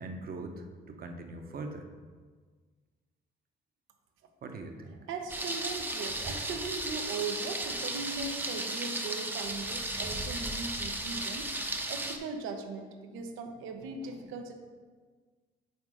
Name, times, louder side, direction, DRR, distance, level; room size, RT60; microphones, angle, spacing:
voice 1, 0.0-1.9 4.4-5.0, right 2 dB, 50° right, 4 dB, 0.8 m, -41 dB
voice 2, 4.9-11.5 11.9-14.5, right 4 dB, 90° right, 5 dB, 0.7 m, -39 dB
Thunder, 5.3-12.2, right 1 dB, 10° right, 0.6 m, -35 dB
5.7 x 4.2 x 4.8 m, 1.5 s
cardioid pair, 90°, 20 cm